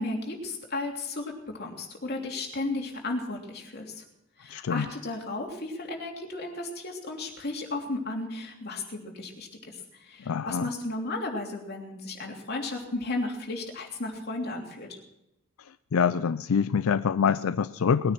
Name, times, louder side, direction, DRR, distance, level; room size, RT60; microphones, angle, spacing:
voice 1, 0.0-4.0 4.4-15.0, left 2 dB, 50° left, 1 dB, 3.1 m, -34 dB
voice 2, 4.5-4.9 10.3-10.7 15.9-18.1, left 6 dB, 90° left, 14 dB, 0.4 m, -25 dB
20.0 x 9.6 x 6.0 m, 0.88 s
head